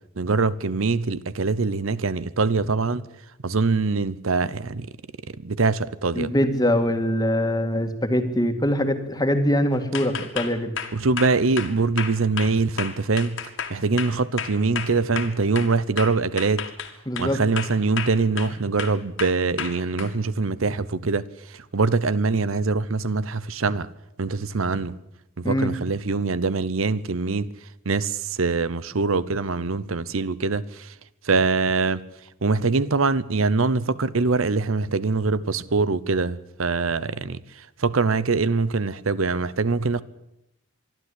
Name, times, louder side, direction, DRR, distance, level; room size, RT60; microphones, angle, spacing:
voice 1, 0.2-3.0 3.4-4.9 5.3-6.3 10.9-13.4 13.7-16.7 17.2-23.9 24.2-25.0 25.4-27.5 27.9-30.9 31.2-32.0 32.4-40.0, right 4 dB, 75° right, 0.8 m, -23 dB
voice 2, 6.2-10.7 17.1-17.4 25.4-25.7, equal, 20° left, 2.0 m, -23 dB
sound 1, 9.9-15.7 16.0-17.3 17.6-18.5 18.8-20.1, left 7 dB, 65° left, 2.3 m, -32 dB
25.0 x 12.0 x 9.9 m
head